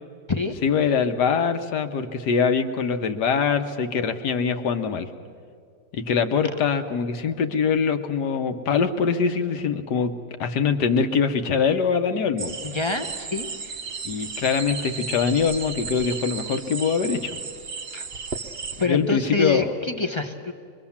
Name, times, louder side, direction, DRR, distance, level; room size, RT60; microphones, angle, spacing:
voice 1, 0.6-5.1 5.9-10.1 10.4-12.6 14.0-17.4 18.9-19.7, left 6 dB, 60° left, 7 dB, 1.5 m, -23 dB
sound 1, 12.4-18.9, right 5 dB, 55° right, 0.6 m, -34 dB
voice 2, 12.6-13.8 17.9-18.1 18.8-20.5, left 3 dB, 30° left, 5 dB, 0.5 m, -27 dB
24.5 x 22.0 x 7.2 m, 2.3 s
omnidirectional pair, 2.1 m